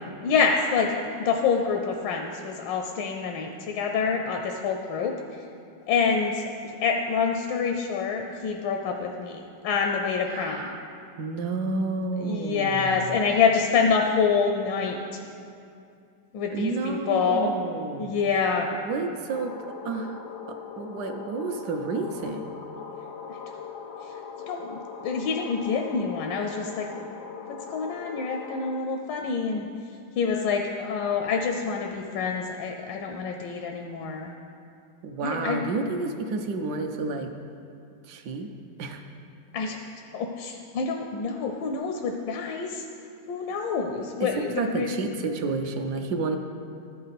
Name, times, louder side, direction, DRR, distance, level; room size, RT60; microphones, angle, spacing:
voice 1, 0.2-5.1 5.9-10.7 12.2-15.0 16.3-17.5 18.0-18.7 23.3-23.4 24.5-27.0 27.7-29.7 30.1-34.3 35.2-35.6 39.5-39.8 40.1-42.8 43.3-44.9, left 5 dB, 85° left, 3 dB, 1.3 m, -26 dB
voice 2, 10.3-10.9 11.2-13.2 16.5-18.1 18.7-19.5 19.8-20.2 20.8-22.5 35.0-37.3 38.1-38.5 38.8-39.0 44.2-46.4, right 3 dB, 70° right, 5 dB, 1.2 m, -30 dB
sound 1, 19.3-28.8, left 6 dB, 70° left, 0.7 m, -40 dB
13.0 x 5.5 x 4.0 m, 2.5 s
omnidirectional pair, 1.9 m